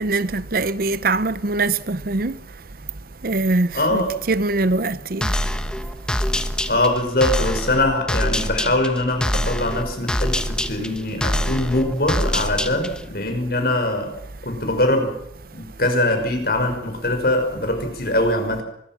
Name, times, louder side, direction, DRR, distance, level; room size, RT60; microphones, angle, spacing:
voice 1, 0.0-2.3 3.2-5.3, right 3 dB, 55° right, 0.8 m, -22 dB
voice 2, 3.7-4.1 6.7-14.2 14.4-15.2 15.5-18.6, left 1 dB, 60° left, 5.6 m, -22 dB
sound 1, 5.2-13.1, equal, 5° left, 1.2 m, -25 dB
24.5 x 21.0 x 6.0 m
head